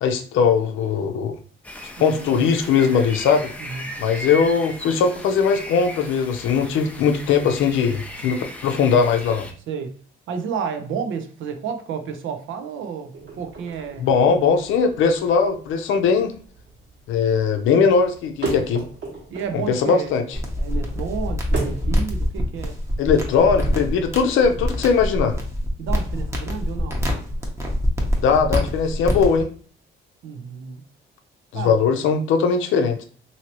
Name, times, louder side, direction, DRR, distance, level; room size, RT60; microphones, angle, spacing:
voice 1, 0.0-1.4 2.0-3.5 4.0-9.5 14.0-16.3 17.1-18.8 19.7-20.2 23.0-25.4 28.2-29.5 31.5-33.0, left 6 dB, 85° left, 6 dB, 0.5 m, -20 dB
sound 1, 1.6-9.5, left 1 dB, 5° left, 0.5 m, -37 dB
voice 2, 2.0-2.4 3.6-3.9 9.7-9.9 10.3-14.1 19.3-22.8 25.8-27.0 30.2-30.8 31.5-31.7, right 6 dB, 80° right, 7 dB, 0.6 m, -31 dB
sound 2, 13.1-21.9, right 3 dB, 60° right, 1.3 m, -36 dB
sound 3, 20.3-29.4, left 1 dB, 15° right, 0.8 m, -25 dB
2.9 x 2.7 x 2.9 m, 0.43 s
cardioid pair, 90°, 20 cm